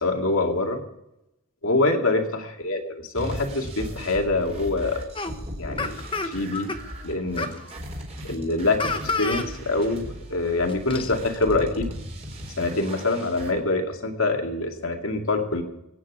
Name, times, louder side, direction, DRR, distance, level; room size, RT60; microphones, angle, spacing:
voice 1, 0.0-0.8 1.6-5.0 5.6-6.7 7.0-7.6 8.2-11.9 12.6-15.6, left 2 dB, 65° left, 3 dB, 2.4 m, -25 dB
sound 1, 3.2-13.5, equal, 30° right, 4.2 m, -37 dB
sound 2, 5.1-5.3 5.8-6.8 7.4-7.6 8.8-9.5 9.8-9.9 10.7-11.1, left 3 dB, 25° left, 1.0 m, -29 dB
23.5 x 9.5 x 4.8 m, 0.88 s
head